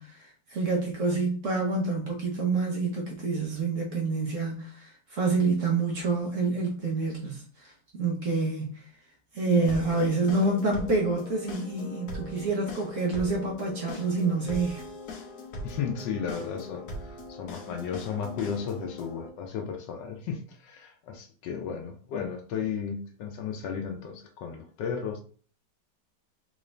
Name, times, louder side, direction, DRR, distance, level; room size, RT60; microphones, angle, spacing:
voice 1, 0.0-8.8 9.3-14.8, right 3 dB, 55° right, 1.0 m, -27 dB
sound 1, 9.7-19.3, left 2 dB, 70° left, 1.3 m, -41 dB
voice 2, 15.6-25.2, left 7 dB, 90° left, 1.4 m, -34 dB
3.9 x 2.5 x 3.2 m
omnidirectional pair, 1.9 m